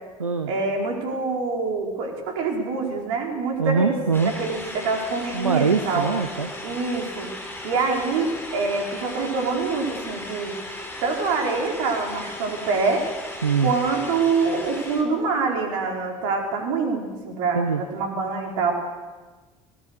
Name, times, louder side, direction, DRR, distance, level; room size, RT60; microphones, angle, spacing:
voice 1, 0.5-3.9 4.2-6.1 6.6-7.3 7.6-10.6 11.0-13.0 13.6-18.7, right 4 dB, 60° right, 1 dB, 4.8 m, -25 dB
voice 2, 3.6-4.3 5.3-6.5 13.4-13.7 17.5-17.8, right 5 dB, 85° right, 7 dB, 1.0 m, -22 dB
sound 1, 4.1-15.0, left 1 dB, 15° left, 4.9 m, -36 dB
25.0 x 19.0 x 6.7 m, 1.3 s
figure-of-eight pair, 60°, 17 cm